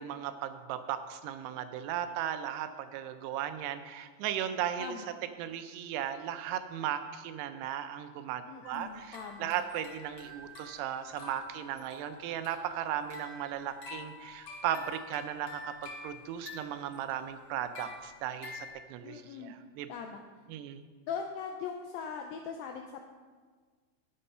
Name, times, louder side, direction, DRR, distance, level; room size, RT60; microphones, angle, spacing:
voice 1, 0.0-5.0 5.4-19.9 20.5-20.8, right 10 dB, 85° right, 10 dB, 2.7 m, -36 dB
voice 2, 4.8-5.1 8.5-9.5 19.0-19.5 19.9-20.2 21.1-23.1, left 6 dB, 85° left, 3 dB, 2.0 m, -40 dB
sound 1, 8.6-18.7, left 3 dB, 45° left, 1.7 m, -48 dB
11.0 x 6.4 x 5.6 m, 1.5 s
omnidirectional pair, 4.8 m